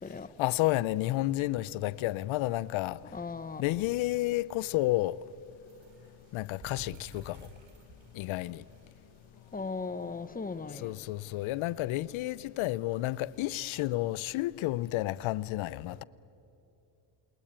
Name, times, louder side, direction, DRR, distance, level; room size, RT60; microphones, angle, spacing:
voice 1, 0.4-3.0 3.6-5.2 6.3-7.5 8.1-8.6 10.7-16.0, left 17 dB, 85° left, 0.7 m, -31 dB
sound 1, 1.4-14.1, right 3 dB, 75° right, 3.8 m, -58 dB
voice 2, 3.1-3.7 9.5-11.0, left 4 dB, 20° left, 1.2 m, -37 dB
28.5 x 21.5 x 8.9 m
cardioid pair, 95°, 47 cm